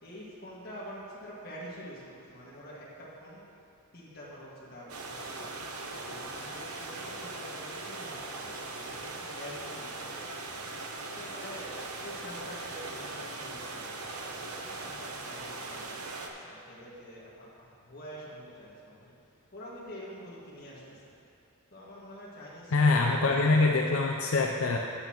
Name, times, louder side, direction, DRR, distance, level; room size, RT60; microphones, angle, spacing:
voice 1, 0.0-2.0 2.3-3.5 3.9-5.5 6.0-10.3 11.2-14.2 14.6-16.0 16.4-19.1 19.5-21.1 21.7-23.9, equal, 45° left, -7 dB, 2.0 m, -46 dB
sound 1, 4.9-16.3, right 3 dB, 80° right, 0.8 m, -40 dB
voice 2, 22.7-24.8, left 3 dB, 70° left, 1 dB, 0.5 m, -24 dB
12.5 x 8.7 x 3.1 m, 2.6 s
head